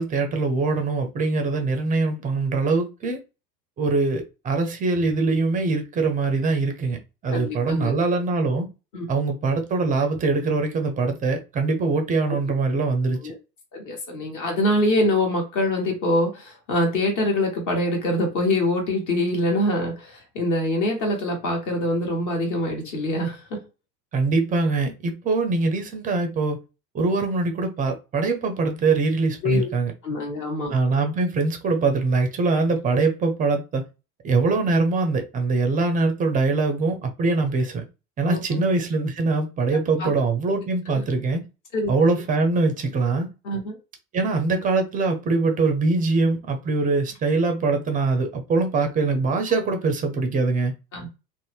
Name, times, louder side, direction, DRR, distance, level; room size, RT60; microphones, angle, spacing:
voice 1, 0.0-3.2 3.8-8.7 9.1-13.3 24.1-26.6 26.9-29.9 30.7-33.8 34.2-37.8 38.2-41.4 41.9-43.3 44.1-50.7, right 3 dB, 15° right, 0.5 m, -23 dB
voice 2, 7.3-7.9 8.9-9.1 13.2-13.3 13.7-23.6 29.4-29.7 30.0-30.7 38.3-38.6 39.7-40.1 40.9-41.0 41.7-41.9 43.4-43.8 50.9-51.1, left 1 dB, 35° left, 1.3 m, -24 dB
2.6 x 2.1 x 3.2 m
figure-of-eight pair, 80°, 50 cm